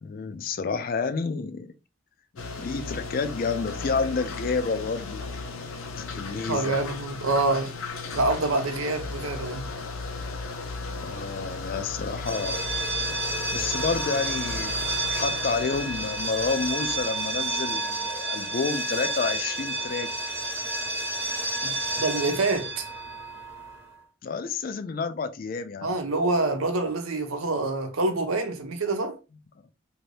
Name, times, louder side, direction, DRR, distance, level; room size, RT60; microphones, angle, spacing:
voice 1, 0.0-1.7 2.6-5.3 6.0-6.8 11.0-12.6 13.5-20.1 24.2-25.9, left 4 dB, 45° left, 0.3 m, -29 dB
sound 1, 2.4-17.6, left 3 dB, 85° left, 0.6 m, -36 dB
voice 2, 6.5-7.7 8.1-9.7 21.6-22.8 25.8-29.2, right 2 dB, 90° right, 0.8 m, -26 dB
sound 2, 12.2-23.9, right 2 dB, 10° right, 0.8 m, -30 dB
2.8 x 2.6 x 3.2 m
head